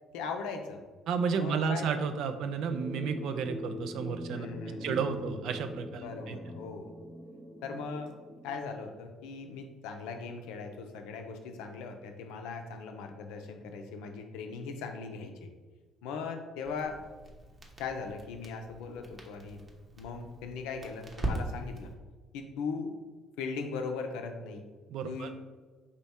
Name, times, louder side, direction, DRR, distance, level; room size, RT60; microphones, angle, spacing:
voice 1, 0.1-0.8 1.4-1.9 4.3-5.0 6.0-6.9 7.6-8.1 8.4-15.5 16.0-17.0 17.8-19.6 19.9-21.9 22.3-23.0 23.4-24.6 25.0-25.3, left 5 dB, 75° left, 5 dB, 0.5 m, -39 dB
voice 2, 1.1-4.5 4.8-6.4 24.9-25.3, right 6 dB, 65° right, 9 dB, 0.3 m, -32 dB
sound 1, 2.7-8.9, equal, 15° right, 0.6 m, -43 dB
Crackle, 16.6-21.9, right 2 dB, 40° right, 0.9 m, -41 dB
4.3 x 2.9 x 3.5 m, 1.4 s
hypercardioid pair, 55°, 0 cm